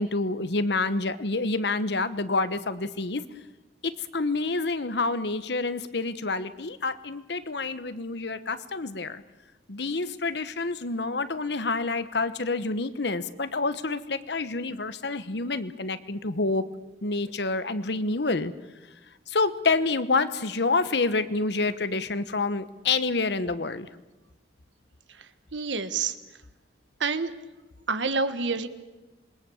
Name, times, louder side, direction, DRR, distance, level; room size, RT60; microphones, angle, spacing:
voice 1, 0.0-3.2 3.8-9.2 9.7-16.6 17.0-18.5 19.3-23.9, left 3 dB, 65° left, 13 dB, 1.1 m, -28 dB
voice 2, 25.5-26.1 27.0-27.3 27.9-28.7, right 4 dB, 80° right, 11 dB, 1.4 m, -27 dB
27.0 x 21.0 x 7.1 m, 1.1 s
head